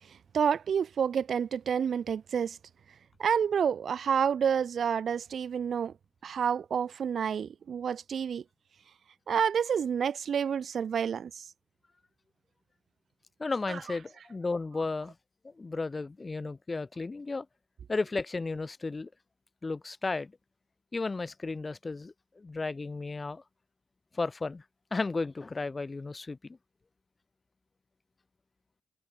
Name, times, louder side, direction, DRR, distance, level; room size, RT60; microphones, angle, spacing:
voice 1, 0.3-2.6 3.2-5.9 6.2-8.4 9.3-11.5 13.7-13.8, right 7 dB, 55° right, 1.7 m, -29 dB
voice 2, 13.4-15.1 15.4-17.5 17.9-19.1 19.6-20.3 20.9-23.4 24.1-24.6 24.9-26.6, left 3 dB, 25° left, 5.7 m, -34 dB
cardioid pair, 90°, 0 cm